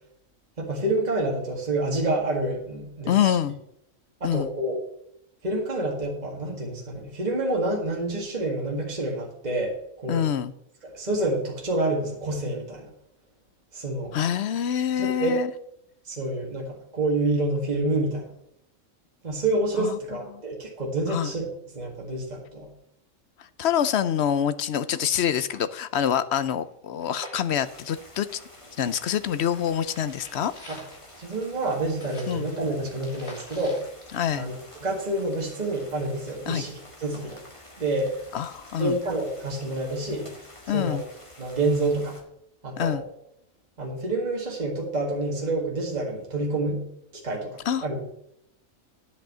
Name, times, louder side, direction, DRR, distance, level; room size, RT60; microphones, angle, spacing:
voice 1, 0.6-3.4 4.2-4.8 5.4-10.3 10.8-12.9 13.7-14.2 15.0-15.3 16.1-18.3 19.2-21.5 21.7-22.7 30.7-30.8 31.2-33.8 34.3-37.4 37.8-38.1 38.8-40.3 40.7-41.0 41.4-42.2 42.6-43.0 43.8-46.8 47.1-48.0, right 2 dB, 30° right, -1 dB, 2.0 m, -28 dB
voice 2, 3.1-3.6 4.2-4.5 10.1-10.5 14.1-15.5 19.8-20.0 20.3-20.4 21.1-21.3 23.4-28.4 28.8-30.5 32.3-32.5 34.1-34.5 36.5-36.6 38.3-38.9 40.7-41.0 42.8-43.0 47.7-47.9, left 9 dB, 65° left, 14 dB, 0.8 m, -26 dB
sound 1, 24.6-24.7 24.9-25.0 25.3-28.5 28.8-34.9 35.2-35.3, left 1 dB, 45° left, 2.9 m, -47 dB
sound 2, 27.6-42.2, left 1 dB, 25° left, 1.9 m, -49 dB
10.5 x 5.5 x 7.2 m, 0.76 s
omnidirectional pair, 1.4 m